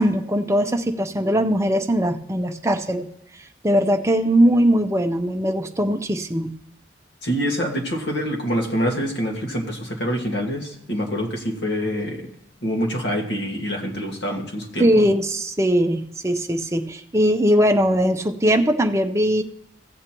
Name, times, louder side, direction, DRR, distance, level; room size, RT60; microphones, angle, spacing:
voice 1, 0.0-3.1 3.6-6.5 14.8-19.4, equal, 15° right, 4 dB, 0.5 m, -20 dB
voice 2, 7.2-12.3 12.6-15.0, equal, 65° left, 0 dB, 1.8 m, -26 dB
16.0 x 8.2 x 3.0 m, 0.77 s
head